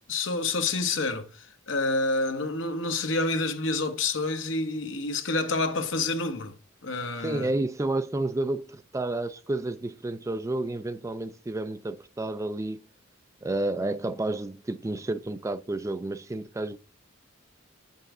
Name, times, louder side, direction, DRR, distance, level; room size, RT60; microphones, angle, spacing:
voice 1, 0.1-6.5 6.8-7.5, left 3 dB, 65° left, 1.1 m, -28 dB
voice 2, 7.2-12.8 13.4-16.8, right 2 dB, 15° right, 0.3 m, -30 dB
8.0 x 5.3 x 3.7 m
head